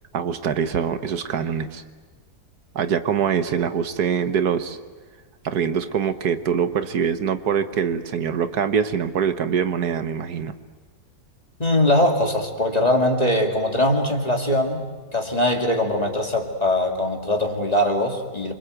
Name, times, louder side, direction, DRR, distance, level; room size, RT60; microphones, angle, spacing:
voice 1, 0.1-1.8 2.7-4.8 5.4-10.5, right 7 dB, 75° right, 9 dB, 1.6 m, -24 dB
voice 2, 11.6-14.9 15.1-18.5, left 1 dB, 25° left, 2 dB, 2.5 m, -21 dB
27.5 x 24.0 x 8.0 m, 1.4 s
omnidirectional pair, 1.7 m